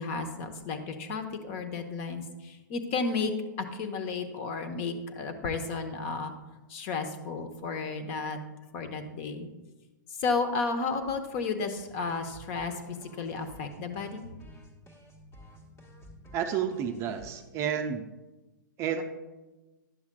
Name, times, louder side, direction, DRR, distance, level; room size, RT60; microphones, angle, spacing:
voice 1, 0.0-3.3 3.6-6.3 6.7-8.4 8.7-9.5 10.2-14.3, left 4 dB, 40° left, 7 dB, 0.9 m, -33 dB
sound 1, 11.7-17.7, equal, 25° left, 1.2 m, -52 dB
voice 2, 16.3-18.1 18.8-19.0, right 8 dB, 25° right, 6 dB, 0.5 m, -30 dB
11.0 x 6.9 x 2.2 m, 1.1 s
hypercardioid pair, 120°, 11 cm